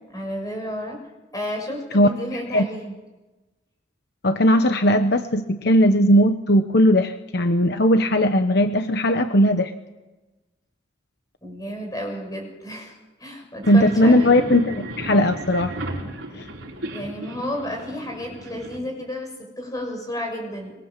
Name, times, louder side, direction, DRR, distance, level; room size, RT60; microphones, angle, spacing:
voice 1, 0.1-1.0 1.3-2.9 11.4-14.5 16.9-20.7, left 1 dB, 20° left, 2 dB, 6.7 m, -32 dB
voice 2, 1.9-2.7 4.2-9.7 13.7-15.7 16.3-16.5, equal, 55° left, 7 dB, 1.1 m, -18 dB
sound 1, 13.6-18.8, right 1 dB, 85° right, 4.8 m, -34 dB
24.5 x 22.5 x 7.5 m, 1.1 s
head